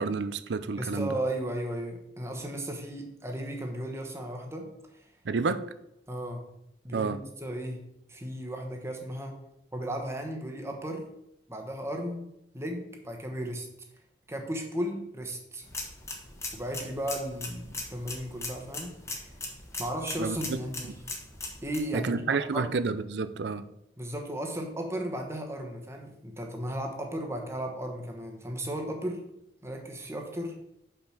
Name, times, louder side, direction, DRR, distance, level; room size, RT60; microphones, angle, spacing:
voice 1, 0.0-1.2 5.2-5.6 6.9-7.2 20.2-20.6 21.9-23.7, right 4 dB, 70° right, 13 dB, 0.5 m, -30 dB
voice 2, 0.8-5.1 6.1-6.5 6.8-7.8 8.1-9.4 9.7-11.0 11.5-12.3 12.5-13.7 14.3-15.6 16.5-19.2 19.8-20.9 21.6-22.7 24.0-29.2 29.6-30.6, right 1 dB, 15° right, 2 dB, 1.1 m, -35 dB
sound 1, 15.6-21.8, left 2 dB, 15° left, 1.1 m, -39 dB
5.8 x 5.0 x 5.9 m, 0.81 s
head